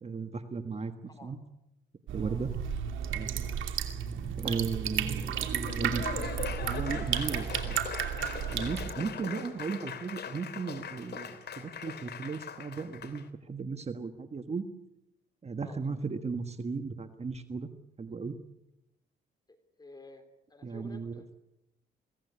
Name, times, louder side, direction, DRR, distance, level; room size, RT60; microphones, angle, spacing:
voice 1, 0.0-1.4 2.1-2.5 3.1-3.3 4.4-6.0 6.6-7.9 8.5-14.6 15.4-17.7 18.0-18.4 20.6-21.2, right 4 dB, 30° right, 8 dB, 1.6 m, -36 dB
sound 1, 2.1-8.9, right 8 dB, 75° right, 2.8 m, -33 dB
voice 2, 2.2-2.6 3.4-3.6 4.3-5.7 15.6-15.8 19.8-20.2 20.5-21.3, left 2 dB, 20° left, 8 dB, 3.3 m, -52 dB
Laughter / Applause, 5.4-13.2, left 7 dB, 55° left, 2.9 m, -41 dB
23.5 x 17.5 x 9.8 m, 0.89 s
cardioid pair, 90°, 20 cm